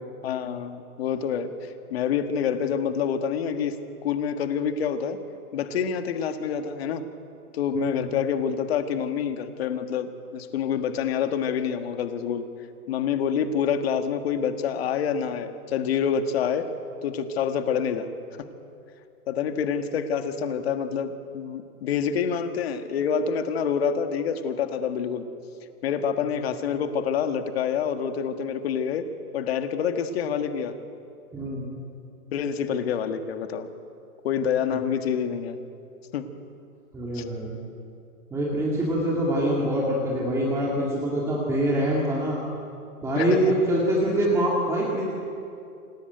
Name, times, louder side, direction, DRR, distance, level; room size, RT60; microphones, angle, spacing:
voice 1, 0.2-3.8 4.0-5.2 5.5-7.0 7.5-12.5 12.9-16.7 17.0-18.1 19.3-25.2 25.8-29.0 29.3-30.7 32.3-33.7 34.2-35.6 36.1-36.2 37.1-37.2 43.2-43.5, left 7 dB, 40° left, 8 dB, 1.7 m, -27 dB
voice 2, 7.7-8.1 31.3-31.7 34.7-34.8 36.9-37.6 38.3-42.4 43.0-45.0, right 1 dB, 5° right, -4 dB, 2.3 m, -24 dB
27.0 x 18.0 x 9.3 m, 2.6 s
hypercardioid pair, 165°, 46 cm